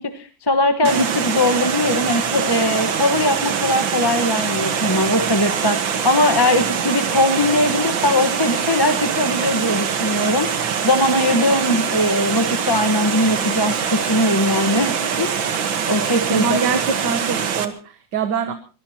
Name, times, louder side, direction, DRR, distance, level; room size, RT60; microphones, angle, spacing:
voice 1, 0.0-15.4 15.9-16.6, left 1 dB, 15° left, 8 dB, 1.2 m, -20 dB
Water, 0.8-17.7, right 7 dB, 80° right, 2.2 m, -23 dB
voice 2, 16.3-18.5, right 5 dB, 65° right, 9 dB, 1.8 m, -24 dB
24.0 x 20.0 x 3.0 m, 0.35 s
omnidirectional pair, 2.1 m